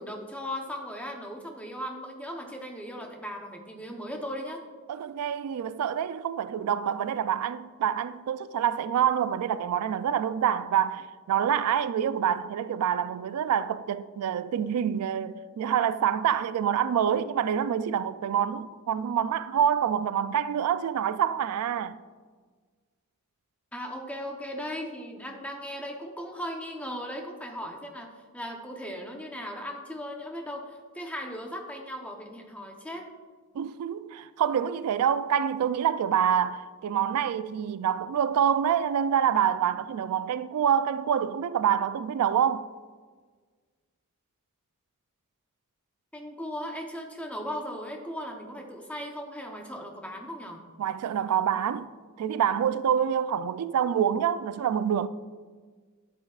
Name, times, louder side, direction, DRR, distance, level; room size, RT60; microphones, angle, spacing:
voice 1, 0.0-4.6 23.7-33.1 46.1-50.6, equal, 5° left, 0.8 m, -37 dB
voice 2, 4.9-22.0 33.6-42.7 50.8-51.9 52.2-55.1, right 8 dB, 80° right, 0.3 m, -26 dB
11.5 x 8.1 x 2.4 m
head